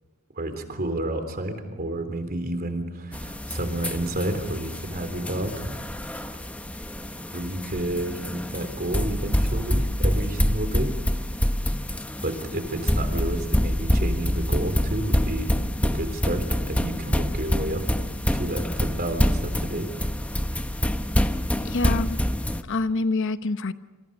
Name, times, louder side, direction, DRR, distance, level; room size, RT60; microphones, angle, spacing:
voice 1, 0.4-5.8 7.3-10.9 12.2-17.9 18.3-19.9, right 1 dB, 45° right, 7 dB, 3.6 m, -30 dB
sound 1, 3.1-22.6, equal, 5° left, 0.9 m, -26 dB
voice 2, 21.6-22.2 22.7-23.7, left 3 dB, 60° left, 11 dB, 0.9 m, -26 dB
27.5 x 27.5 x 5.4 m, 1.2 s
head